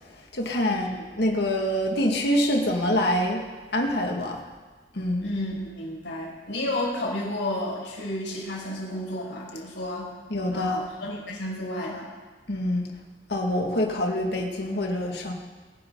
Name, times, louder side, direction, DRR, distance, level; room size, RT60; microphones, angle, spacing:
voice 1, 0.3-0.9 1.2-3.4 3.7-4.4 4.9-5.3 10.3-10.8 12.5-12.9 13.3-15.3, left 1 dB, 65° left, 1 dB, 2.2 m, -25 dB
voice 2, 5.2-10.1 10.5-12.1, left 1 dB, 90° left, -5 dB, 6.1 m, -31 dB
25.0 x 10.5 x 4.0 m, 1.4 s
head